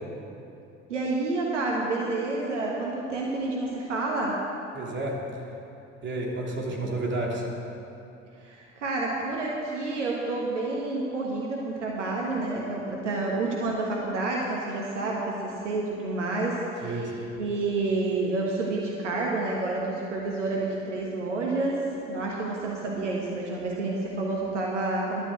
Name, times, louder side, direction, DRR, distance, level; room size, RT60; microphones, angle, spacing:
voice 1, 0.9-4.4 8.4-17.1 17.4-21.8 22.1-25.2, right 2 dB, 80° right, -2 dB, 1.4 m, -29 dB
voice 2, 4.7-5.2 6.0-7.5 16.8-17.3, right 2 dB, 30° right, -2 dB, 3.0 m, -31 dB
12.0 x 9.3 x 7.7 m, 2.7 s
figure-of-eight pair, 55°, 36 cm